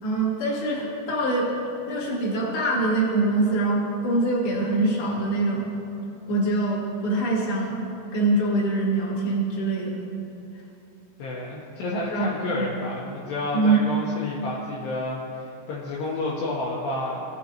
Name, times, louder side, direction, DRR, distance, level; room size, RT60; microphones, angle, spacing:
voice 1, 0.0-1.6 1.9-5.6 6.3-7.8 8.1-10.0 12.1-12.7 13.5-13.8, right 2 dB, 45° left, -7 dB, 1.9 m, -24 dB
voice 2, 11.2-17.2, left 2 dB, 75° left, -5 dB, 2.7 m, -30 dB
17.5 x 7.1 x 2.9 m, 2.7 s
omnidirectional pair, 5.8 m